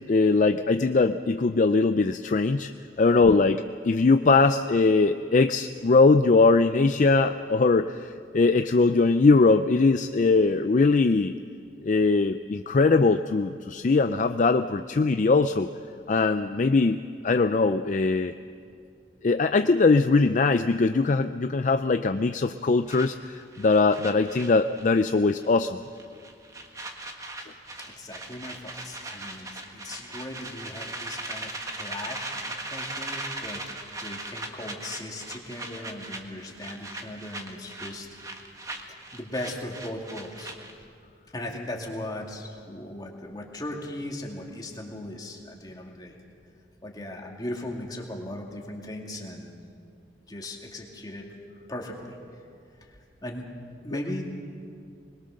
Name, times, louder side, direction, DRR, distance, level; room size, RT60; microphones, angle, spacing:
voice 1, 0.1-2.7 3.0-11.3 11.8-15.7 16.1-18.3 19.2-25.8, left 3 dB, 45° left, 9 dB, 0.4 m, -21 dB
sound 1, 22.9-25.1 25.4-25.7 26.0-40.9, right 2 dB, 20° right, 1.4 m, -39 dB
voice 2, 27.9-38.1 38.9-40.5 41.3-46.1 46.8-49.6 50.3-51.3 51.7-52.2 52.8-53.0 53.2-53.4 53.8-54.3, left 1 dB, 20° left, 0 dB, 2.5 m, -38 dB
23.0 x 21.0 x 6.6 m, 2.4 s
head